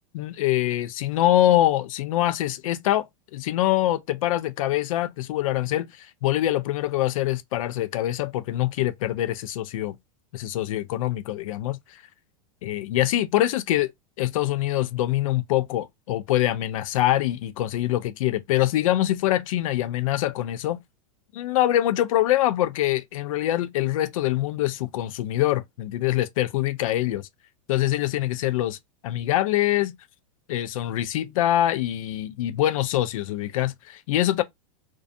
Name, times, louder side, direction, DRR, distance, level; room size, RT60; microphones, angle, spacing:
voice 1, 0.1-10.0 10.3-12.0 12.6-13.9 14.2-20.8 21.3-27.3 27.7-28.8 29.0-29.9 30.5-34.4, left 14 dB, 65° left, 0.4 m, -24 dB
2.5 x 2.2 x 2.5 m
supercardioid pair, 160°, 18 cm